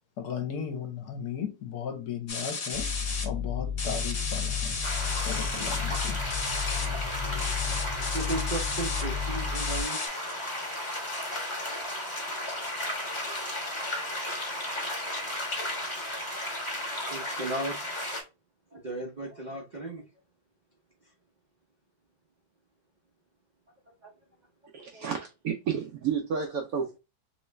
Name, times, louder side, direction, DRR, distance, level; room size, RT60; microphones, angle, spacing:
voice 1, 0.2-2.9 3.2-4.8 5.1-6.2, left 7 dB, 65° left, 1.2 m, -36 dB
sound 1, 2.3-3.2 3.8-6.8 7.4-9.0 9.5-10.1, left 4 dB, 45° left, 0.9 m, -34 dB
sound 2, 2.7-9.8, left 7 dB, 90° left, 0.3 m, -33 dB
sound 3, 4.8-18.2, left 1 dB, 25° left, 0.7 m, -34 dB
voice 2, 6.6-10.0 10.5-10.6 11.6-11.7 12.0-12.1 13.2-13.4 14.7-14.9 16.2-16.4 17.1-17.8 18.7-20.0 24.0-24.1 24.9-25.0, right 2 dB, 55° right, 0.5 m, -37 dB
voice 3, 24.7-27.0, right 7 dB, 75° right, 0.8 m, -31 dB
3.1 x 3.0 x 3.1 m
omnidirectional pair, 2.0 m